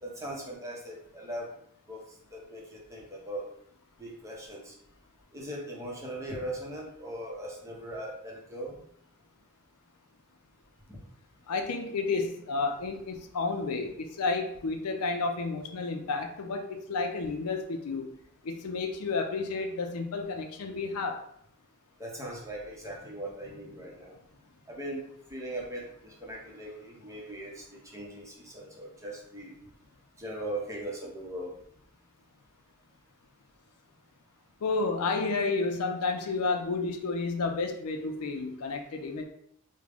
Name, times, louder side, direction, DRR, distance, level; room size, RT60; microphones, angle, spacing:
voice 1, 0.0-1.5 1.9-2.0 2.3-3.5 4.0-4.7 5.3-8.7 10.9-11.0 22.0-24.2 24.7-29.5 30.2-31.5, right 1 dB, 15° right, -2 dB, 0.7 m, -39 dB
voice 2, 11.5-18.1 18.4-21.2 34.6-39.2, left 3 dB, 80° left, 5 dB, 0.5 m, -31 dB
3.6 x 2.1 x 3.3 m, 0.68 s
head